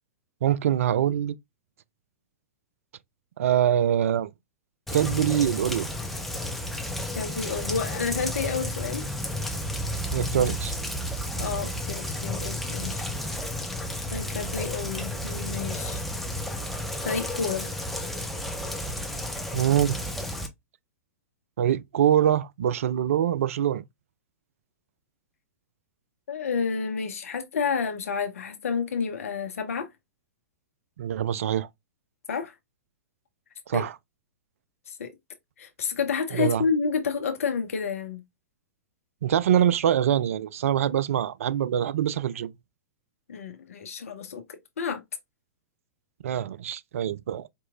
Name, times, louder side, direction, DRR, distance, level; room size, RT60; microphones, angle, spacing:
voice 1, 0.4-1.3 3.4-4.3 4.9-5.9 10.1-10.7 19.5-20.0 21.6-23.8 31.0-31.7 33.7-33.9 36.3-36.6 39.2-42.5 46.2-47.5, right 10 dB, 65° right, 0.4 m, -24 dB
Rain, 4.9-20.5, left 1 dB, ahead, 0.7 m, -32 dB
voice 2, 7.2-9.0 11.4-13.0 14.1-16.0 17.0-17.7 26.3-29.9 32.3-32.6 33.7-33.9 34.9-35.1 35.6-38.2 43.3-44.4 44.8-45.0, left 5 dB, 65° left, 0.8 m, -30 dB
4.6 x 3.0 x 2.3 m
figure-of-eight pair, 105°, 8 cm